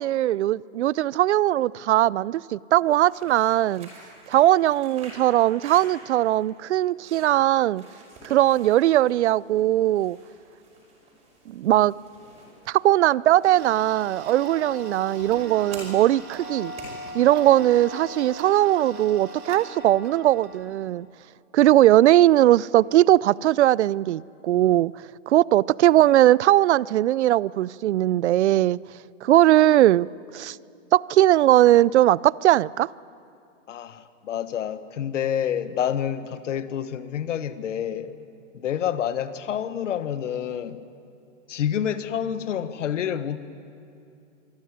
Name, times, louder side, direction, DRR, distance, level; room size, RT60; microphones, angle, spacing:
voice 1, 0.0-3.9 4.3-7.8 8.2-10.2 11.5-11.9 12.7-16.7 17.1-21.1 21.5-24.9 25.3-28.8 29.2-30.1 30.3-30.6 30.9-32.9, right 14 dB, 60° right, 0.5 m, -19 dB
sound 1, 3.0-18.6, right 2 dB, 15° right, 5.5 m, -49 dB
Tick-tock, 13.4-20.7, right 1 dB, 35° right, 2.9 m, -39 dB
voice 2, 33.7-38.1 38.5-40.8 41.5-43.4, left 9 dB, 70° left, 1.3 m, -28 dB
24.5 x 15.0 x 9.5 m
hypercardioid pair, 165°, 38 cm